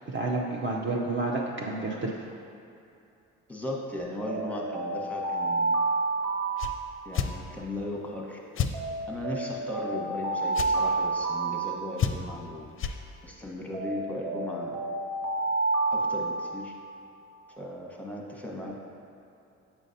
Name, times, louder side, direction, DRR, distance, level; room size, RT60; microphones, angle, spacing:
voice 1, 0.1-2.2, right 2 dB, 30° right, -2 dB, 0.7 m, -30 dB
voice 2, 3.5-5.7 7.0-8.4 9.1-12.6 13.2-14.8 15.9-16.7 17.5-18.8, left 1 dB, 5° left, -2 dB, 1.1 m, -37 dB
Alarm, 4.2-7.6 8.7-12.6 13.7-17.0, right 3 dB, 80° right, 0.8 m, -30 dB
sound 1, 6.6-6.7 7.1-7.3 8.5-8.7 10.5-10.7 12.0-12.4 12.8-13.0, left 7 dB, 35° left, 0.5 m, -28 dB
7.4 x 5.2 x 2.7 m, 2.7 s
hypercardioid pair, 50°, 37 cm